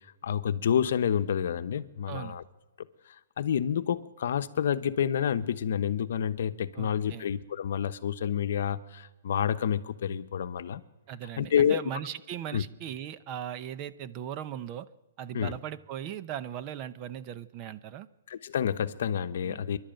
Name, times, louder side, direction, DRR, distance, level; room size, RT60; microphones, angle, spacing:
voice 1, 0.2-2.4 3.4-10.8 11.4-11.8 12.5-12.6 15.3-15.5 18.3-19.8, left 8 dB, 60° left, 1.0 m, -28 dB
voice 2, 6.7-7.3 11.1-14.9 15.2-18.1 19.4-19.6, right 10 dB, 25° right, 0.7 m, -38 dB
26.5 x 11.5 x 9.0 m
hypercardioid pair, 165°, 0 cm